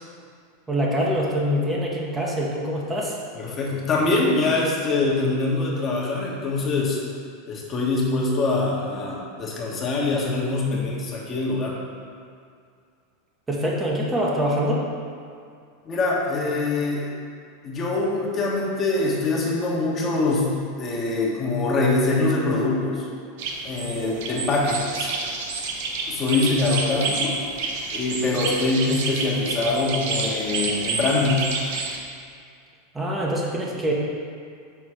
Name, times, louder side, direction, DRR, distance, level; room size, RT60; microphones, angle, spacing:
voice 1, 0.7-3.2 13.5-14.9 28.9-29.0 32.9-33.9, equal, 15° right, -3 dB, 1.1 m, -24 dB
voice 2, 3.3-7.0 7.5-11.8 15.9-17.1 17.6-20.5 20.8-23.1 23.6-25.1 26.1-27.4 27.9-31.4, left 3 dB, 35° left, -4 dB, 1.3 m, -24 dB
sound 1, 23.4-32.0, right 3 dB, 65° right, 0.8 m, -29 dB
5.9 x 3.8 x 4.9 m, 2.3 s
hypercardioid pair, 90°, 0 cm